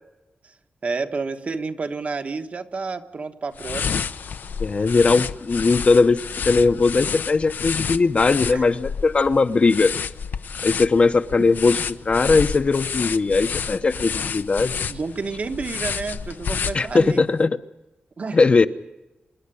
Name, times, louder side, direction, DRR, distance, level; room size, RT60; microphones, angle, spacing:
voice 1, 0.8-4.0 8.5-8.6 14.9-17.2 18.2-18.4, right 4 dB, 45° right, 7 dB, 1.2 m, -30 dB
sound 1, 3.5-17.2, left 6 dB, 75° left, 0.7 m, -30 dB
voice 2, 4.6-9.9 10.6-11.8 12.1-14.7 16.7-17.6 18.3-18.7, left 4 dB, 40° left, 10 dB, 0.8 m, -19 dB
26.5 x 11.0 x 9.9 m, 0.99 s
wide cardioid pair, 150°, 3 cm